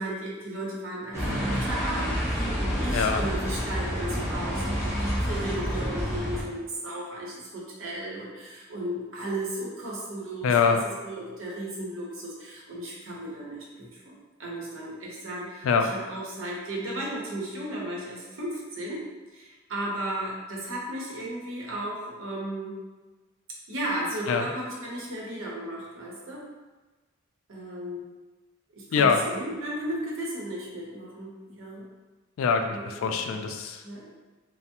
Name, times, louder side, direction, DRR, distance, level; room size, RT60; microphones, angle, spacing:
voice 1, 0.0-19.0 19.3-22.8 23.7-26.5 27.5-28.1 28.7-31.9 32.7-33.2 33.8-34.1, right 1 dB, 75° right, -4 dB, 0.8 m, -35 dB
sound 1, 1.1-6.4, equal, 15° right, 1.0 m, -28 dB
voice 2, 2.9-3.2 10.4-10.8 15.6-15.9 24.3-24.5 28.9-29.2 32.4-33.8, left 5 dB, 85° left, 5 dB, 0.3 m, -23 dB
3.3 x 2.0 x 2.8 m, 1.2 s
head